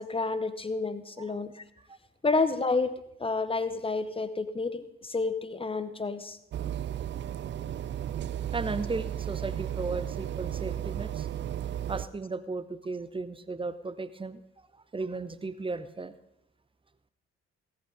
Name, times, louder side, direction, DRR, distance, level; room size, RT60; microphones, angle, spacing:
voice 1, 0.0-1.6 2.2-2.9 3.2-6.4, left 3 dB, 15° left, 13 dB, 1.0 m, -30 dB
sound 1, 6.5-12.0, right 10 dB, 35° right, 0.5 m, -34 dB
voice 2, 8.5-11.3 11.9-14.4 14.7-16.1, right 3 dB, 15° right, 14 dB, 0.8 m, -35 dB
17.0 x 8.4 x 5.1 m, 0.79 s
figure-of-eight pair, 40°, 32 cm